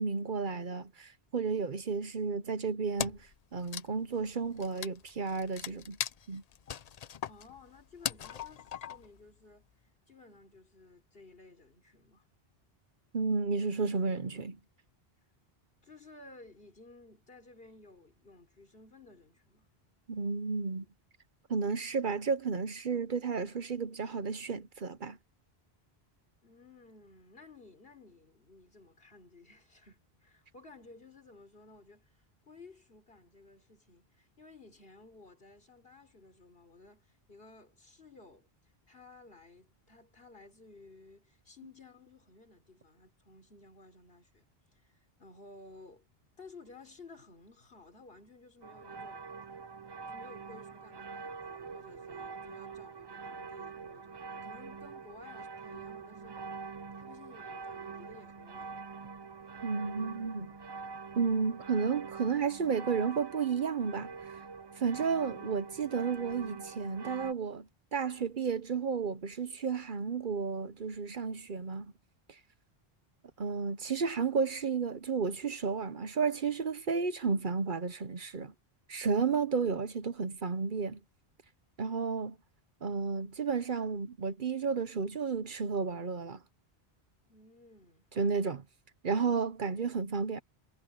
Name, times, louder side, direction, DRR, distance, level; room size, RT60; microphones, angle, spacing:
voice 1, 0.0-6.0 6.3-6.4 13.1-14.6 20.1-20.8 21.5-25.2 59.6-60.5 61.1-64.4 64.8-71.9 72.3-72.4 73.4-78.5 78.9-81.0 81.8-82.4 82.8-86.4 88.2-88.6 89.0-90.4, right 5 dB, 55° right, 1.0 m, -32 dB
Wood, 3.0-3.3 3.6-9.2, left 8 dB, 50° left, 0.5 m, -39 dB
voice 2, 7.3-9.7 10.1-12.3 15.8-19.7 26.4-44.4 44.7-46.0 46.4-49.3 50.0-56.4 57.0-58.9 87.3-88.1, left 3 dB, 65° left, 3.7 m, -55 dB
sound 1, 48.6-67.3, right 5 dB, 35° right, 0.4 m, -45 dB
omnidirectional pair, 1.1 m